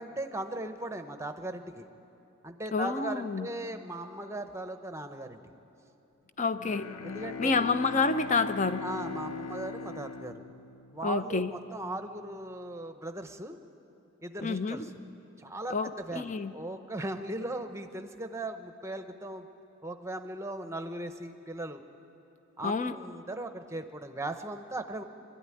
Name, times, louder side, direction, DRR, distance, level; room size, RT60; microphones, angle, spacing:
voice 1, 0.0-1.9 2.4-5.4 7.0-7.7 8.8-10.4 10.9-13.6 14.2-14.9 15.4-19.5 19.8-21.8 22.6-25.0, right 1 dB, 15° right, 7 dB, 0.8 m, -38 dB
voice 2, 2.7-3.5 6.4-6.9 7.4-8.8 11.0-11.5 14.4-14.9 15.7-16.5 22.6-23.0, left 4 dB, 35° left, 11 dB, 0.6 m, -28 dB
Bowed string instrument, 6.5-11.4, left 4 dB, 90° left, 0.7 m, -40 dB
23.0 x 13.0 x 9.8 m, 2.9 s
head